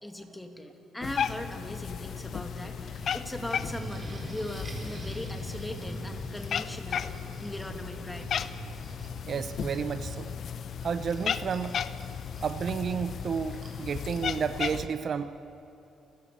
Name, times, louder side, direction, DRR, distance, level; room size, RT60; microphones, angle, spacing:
voice 1, 0.0-8.3, left 1 dB, 10° left, 5 dB, 2.6 m, -39 dB
Cat, 1.0-14.9, left 8 dB, 60° left, 0.7 m, -35 dB
sound 1, 1.6-15.0, right 2 dB, 35° right, 4.2 m, -45 dB
voice 2, 9.3-10.3 10.8-11.8 12.4-15.3, right 6 dB, 55° right, 11 dB, 0.8 m, -31 dB
29.0 x 14.5 x 8.5 m, 2.9 s
cardioid pair, 90°, 0 cm